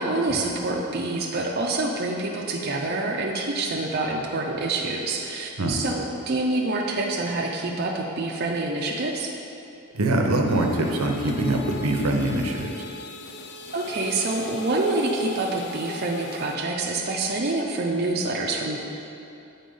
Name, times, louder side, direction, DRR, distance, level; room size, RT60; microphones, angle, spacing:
voice 1, 0.0-9.3 13.7-18.8, right 2 dB, 45° right, -1 dB, 0.5 m, -26 dB
voice 2, 9.9-12.8, right 1 dB, 80° right, 2 dB, 0.7 m, -23 dB
sound 1, 10.5-16.6, left 2 dB, 50° left, 0.4 m, -39 dB
7.7 x 4.1 x 5.4 m, 2.7 s
head